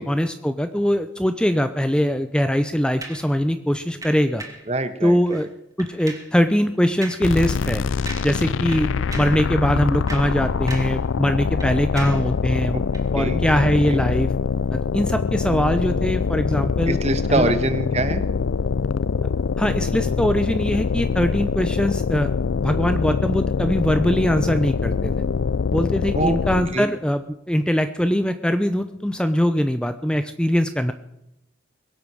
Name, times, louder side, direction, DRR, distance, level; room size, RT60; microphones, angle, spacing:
voice 1, 0.0-4.4 5.0-5.5 5.8-7.8 8.2-8.9 9.1-12.8 13.1-14.3 14.7-17.0 17.3-17.5 19.6-22.3 22.6-25.1 25.7-30.9, equal, 5° left, 9 dB, 0.7 m, -22 dB
sound 1, 3.0-3.3 4.0-4.7 5.2-5.5 5.8-6.3 7.0-7.3 7.6-7.8 8.1-8.4 8.7-9.4 9.9-11.0 11.3-12.3 12.9-13.1, right 3 dB, 20° right, 2.3 m, -38 dB
voice 2, 4.7-5.4 12.7-12.8 13.1-14.1 16.9-18.2 26.1-26.4 26.7-26.9, right 2 dB, 35° right, 11 dB, 1.4 m, -25 dB
sound 2, 7.2-26.8, left 5 dB, 85° left, 0.5 m, -24 dB
22.0 x 8.8 x 6.3 m, 0.85 s
head